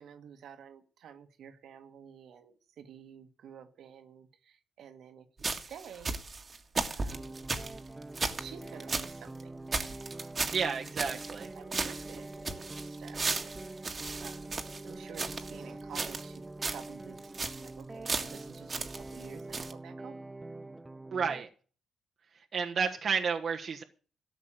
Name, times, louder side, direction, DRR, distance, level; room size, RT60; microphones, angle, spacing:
voice 1, 0.0-6.2 6.9-7.5 8.4-9.6 11.4-16.4 16.7-20.2, right 8 dB, 70° right, 7 dB, 1.8 m, -51 dB
sound 1, 5.4-9.1 9.4-9.5 9.7-11.5 11.7-15.6 15.9-16.4 16.6-16.9 17.2-17.7 18.0-19.3 19.5-19.7, right 3 dB, 30° right, 1.9 m, -35 dB
sound 2, 7.1-21.4, right 2 dB, 15° right, 0.6 m, -45 dB
voice 2, 10.5-11.5 21.1-21.5 22.5-23.8, right 6 dB, 50° right, 2 dB, 1.3 m, -31 dB
13.5 x 6.0 x 9.0 m, 0.39 s
cardioid pair, 90°, 0 cm